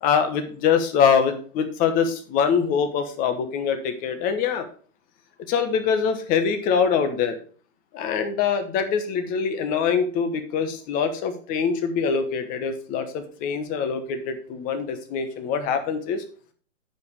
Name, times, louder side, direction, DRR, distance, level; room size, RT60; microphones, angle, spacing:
voice 1, 0.0-4.7 5.5-7.4 7.9-16.2, left 6 dB, 20° left, 8 dB, 1.1 m, -24 dB
9.4 x 5.2 x 4.7 m, 0.43 s
hypercardioid pair, 145°, 38 cm